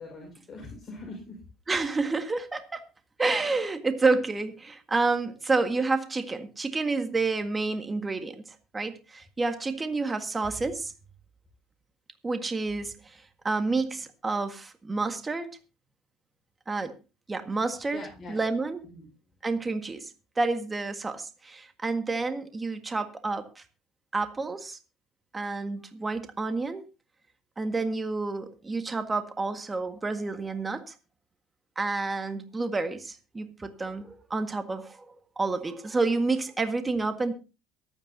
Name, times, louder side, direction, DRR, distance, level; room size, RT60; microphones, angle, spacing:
voice 1, 0.0-1.4 17.9-18.5 18.8-19.1, left 2 dB, 30° left, -1 dB, 5.4 m, -42 dB
voice 2, 1.7-2.8 3.2-10.9 12.2-15.5 16.7-16.9 17.3-18.0 18.3-18.8 19.4-23.6 24.1-24.8 25.3-26.8 27.6-30.9 31.8-37.3, right 3 dB, 20° right, 8 dB, 1.7 m, -29 dB
23.0 x 9.0 x 2.8 m, 0.31 s
hypercardioid pair, 70°, 0 cm